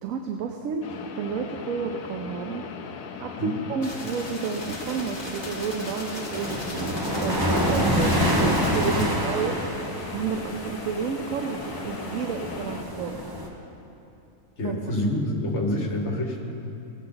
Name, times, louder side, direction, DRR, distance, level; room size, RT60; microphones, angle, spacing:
voice 1, 0.0-2.6 3.2-9.5 10.1-13.2 14.6-14.9, right 6 dB, 75° right, 3 dB, 1.1 m, -31 dB
sound 1, 0.8-12.8, left 5 dB, 80° left, 1.1 m, -39 dB
sound 2, 3.8-9.1, left 1 dB, 30° left, 1.8 m, -37 dB
sound 3, 6.3-13.5, equal, 15° right, 1.1 m, -27 dB
voice 2, 14.6-16.4, left 1 dB, 55° left, 0 dB, 1.7 m, -27 dB
18.0 x 7.7 x 4.0 m, 2.8 s
omnidirectional pair, 1.4 m